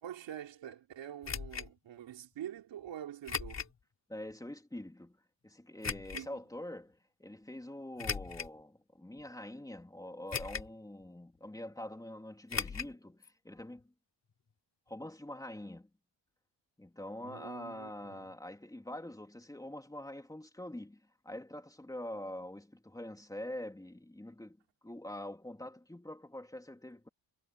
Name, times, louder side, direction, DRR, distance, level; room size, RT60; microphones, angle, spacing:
voice 1, 0.0-3.7 6.1-6.4 17.2-18.3, right 10 dB, 85° right, 3.4 m, -46 dB
sound 1, 1.2-1.7 3.3-3.8 4.3-4.4 5.8-6.3 8.0-8.6 9.2-9.3 10.3-10.8 11.0-11.1 12.5-12.9 13.2-13.3 13.6-13.7, left 6 dB, 35° left, 3.9 m, -38 dB
voice 2, 4.1-13.8 14.9-15.9 16.8-24.6 24.8-27.1, left 1 dB, 10° left, 3.3 m, -45 dB
wide cardioid pair, 150°, 44 cm